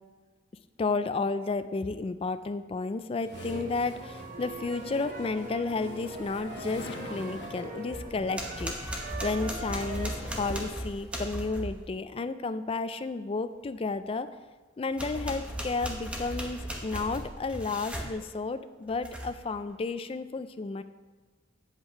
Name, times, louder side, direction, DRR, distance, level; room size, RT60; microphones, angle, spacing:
voice 1, 0.8-14.3 14.8-20.8, left 3 dB, 30° left, 11 dB, 0.3 m, -32 dB
sound 1, 3.2-7.9 8.9-11.4, left 2 dB, 60° left, 1.1 m, -47 dB
sound 2, 3.3-10.7, right 2 dB, 40° right, 0.9 m, -41 dB
sound 3, 7.9-11.8 14.9-18.1 18.9-19.4, equal, 5° right, 1.0 m, -37 dB
8.0 x 7.7 x 4.4 m, 1.4 s
head